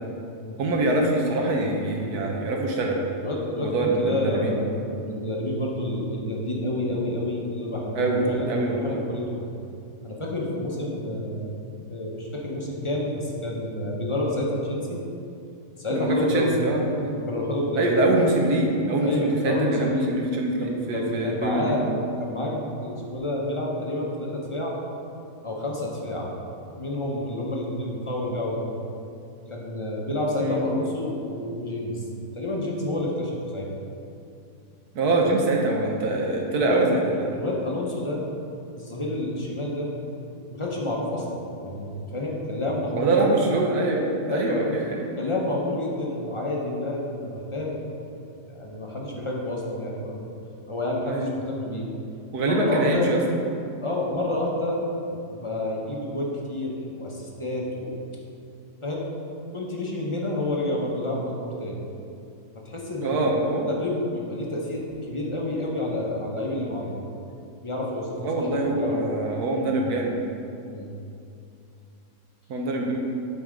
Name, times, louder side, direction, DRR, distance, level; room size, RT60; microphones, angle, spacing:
voice 1, 0.6-3.0 3.6-4.6 7.9-9.0 15.9-17.2 17.8-21.8 30.4-30.6 34.9-37.3 42.9-45.0 51.0-51.3 52.3-53.2 63.0-63.7 68.2-70.1 72.5-73.0, right 2 dB, 80° right, 0 dB, 1.4 m, -24 dB
voice 2, 3.2-4.6 4.9-9.4 10.0-11.5 11.9-15.0 15.8-16.6 17.1-17.9 19.0-20.1 20.6-21.8 22.2-24.8 25.4-26.3 26.7-28.7 29.5-32.0 32.3-33.7 35.0-35.2 36.6-38.2 38.8-39.9 40.5-43.2 44.3-44.7 45.2-47.8 48.5-50.3 50.7-51.8 52.4-53.1 53.8-54.8 55.1-57.9 58.8-59.1 59.5-61.8 62.6-63.2 63.7-66.9 67.6-69.0 70.7-70.9, left 1 dB, 25° left, -3 dB, 0.7 m, -29 dB
7.8 x 4.2 x 5.0 m, 2.6 s
omnidirectional pair, 1.7 m